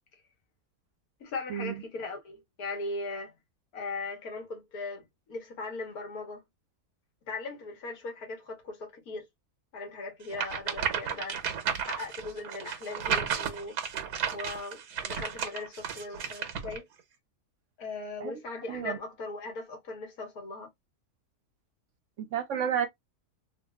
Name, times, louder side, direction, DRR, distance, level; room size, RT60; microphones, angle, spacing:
voice 1, 1.2-3.4 3.7-6.4 7.3-9.3 9.7-11.4 11.9-13.8 14.3-16.9 17.8-20.7, left 3 dB, 70° left, 1.7 m, -39 dB
sound 1, 10.3-16.8, right 8 dB, 90° right, 1.5 m, -33 dB
voice 2, 22.2-22.9, right 8 dB, 65° right, 0.8 m, -31 dB
3.7 x 2.3 x 2.3 m
omnidirectional pair, 1.7 m